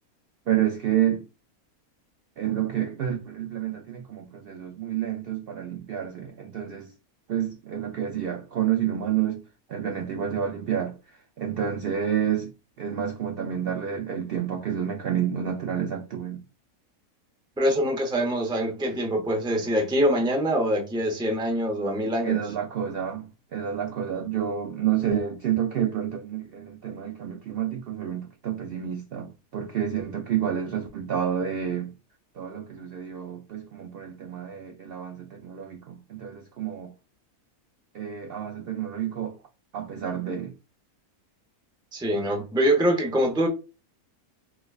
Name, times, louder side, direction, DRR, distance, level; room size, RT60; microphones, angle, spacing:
voice 1, 0.5-1.3 2.4-6.9 7.3-9.4 9.7-12.5 12.8-16.4 22.2-31.9 32.3-36.9 37.9-39.4 39.7-40.5, right 9 dB, 80° right, 0.5 m, -29 dB
voice 2, 17.6-22.4 41.9-43.5, equal, 5° right, 0.4 m, -24 dB
4.6 x 2.2 x 2.3 m
omnidirectional pair, 1.6 m